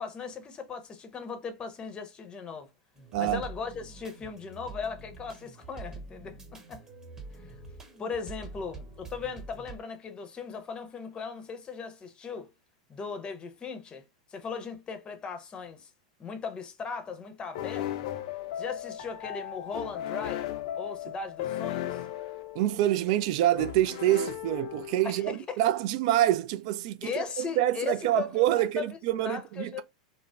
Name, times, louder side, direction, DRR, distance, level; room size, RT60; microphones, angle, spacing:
voice 1, 0.0-2.7 3.1-6.8 7.3-7.5 8.0-12.5 12.9-14.1 14.3-15.9 16.2-18.1 18.6-20.5 20.8-22.0 25.0-25.6 27.0-28.9 29.2-29.8, left 5 dB, 25° left, 0.6 m, -38 dB
sound 1, 2.9-9.8, right 3 dB, 20° right, 1.1 m, -45 dB
voice 2, 3.1-3.4 22.5-27.1 27.4-29.8, right 13 dB, 60° right, 0.3 m, -26 dB
sound 2, 17.6-25.2, left 12 dB, 65° left, 0.4 m, -36 dB
2.5 x 2.0 x 3.2 m
hypercardioid pair, 110°, 4 cm